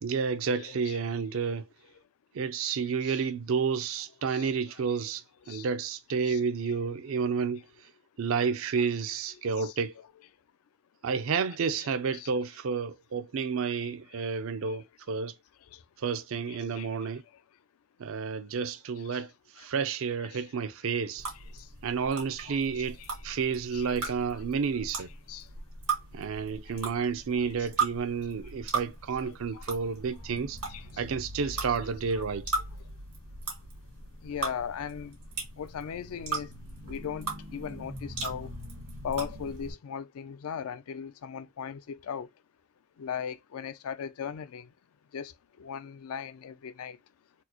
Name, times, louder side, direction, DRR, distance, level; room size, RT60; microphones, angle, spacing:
voice 1, 0.0-1.7 2.3-7.7 8.2-9.9 11.0-15.3 16.0-17.2 18.0-21.3 21.8-23.0 23.2-25.1 26.1-30.6 31.0-32.5, right 5 dB, 65° right, 0.4 m, -30 dB
voice 2, 0.5-1.1 3.0-3.2 4.3-4.5 5.5-5.7 6.3-6.4 8.8-8.9 9.6-10.1 11.8-11.9 12.1-12.3 16.5-16.9 19.1-19.2 20.2-20.4 22.4-23.1 23.7-24.1 25.3-25.4 27.6-27.7 28.1-28.2 29.5-29.6 30.7-31.0 31.7-31.8 32.2-32.3 34.2-35.1 35.6-36.5 36.9-38.5 39.0-42.3 43.0-44.7 45.1-45.3 45.6-47.0, left 7 dB, 75° left, 0.4 m, -38 dB
sound 1, 21.2-39.7, right 4 dB, 85° right, 1.9 m, -38 dB
4.3 x 2.0 x 2.8 m
head